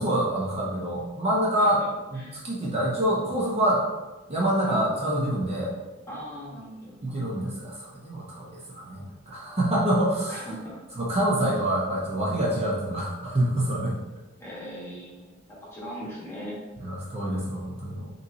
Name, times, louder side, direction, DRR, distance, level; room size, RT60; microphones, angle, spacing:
voice 1, 0.0-1.8 2.1-3.9 4.3-5.7 7.0-10.4 11.0-14.0 16.8-18.1, right 1 dB, 30° right, -5 dB, 0.7 m, -26 dB
voice 2, 4.6-5.1 6.1-7.2 10.3-10.8 14.4-16.6, equal, 15° left, -6 dB, 1.2 m, -39 dB
5.1 x 3.1 x 2.7 m, 1.1 s
head